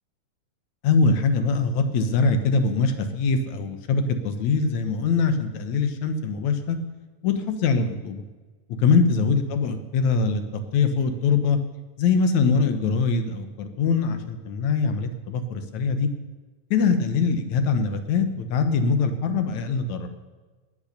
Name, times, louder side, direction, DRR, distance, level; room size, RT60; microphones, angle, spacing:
voice 1, 0.8-6.8 7.2-8.2 8.8-10.4 10.7-11.6 12.0-16.1 16.7-20.1, left 4 dB, 65° left, 8 dB, 2.3 m, -23 dB
19.5 x 8.1 x 6.7 m, 1.3 s
omnidirectional pair, 3.9 m